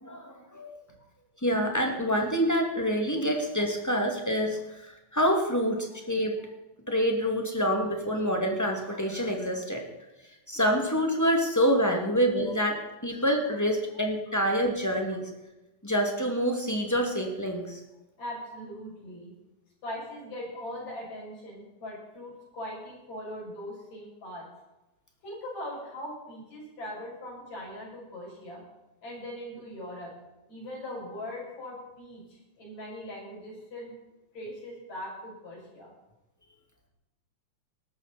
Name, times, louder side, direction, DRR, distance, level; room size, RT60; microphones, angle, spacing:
voice 1, 0.0-0.7 1.4-4.6 5.1-6.4 6.9-9.8 10.5-15.3 15.8-17.8, equal, 5° left, 2 dB, 2.0 m, -26 dB
voice 2, 18.2-19.3 19.8-24.5 25.2-28.6 29.0-30.1 30.5-33.9 34.3-35.9, left 1 dB, 60° left, -4 dB, 8.8 m, -40 dB
18.0 x 14.0 x 4.4 m, 1.0 s
omnidirectional pair, 3.6 m